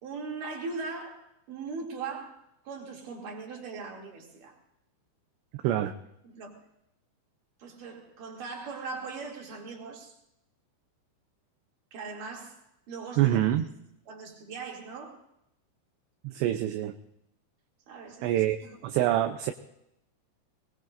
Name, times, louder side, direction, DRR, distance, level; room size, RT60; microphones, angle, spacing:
voice 1, 0.0-2.4 2.6-4.6 6.3-6.6 7.6-10.1 11.9-12.6 12.9-13.4 14.1-15.2 17.9-18.7, right 4 dB, 50° right, 0 dB, 3.9 m, -40 dB
voice 2, 5.6-5.9 13.2-13.7 16.2-17.0 18.2-18.6 18.8-19.5, right 13 dB, 80° right, 7 dB, 2.8 m, -25 dB
23.5 x 20.0 x 2.6 m, 0.81 s
omnidirectional pair, 5.4 m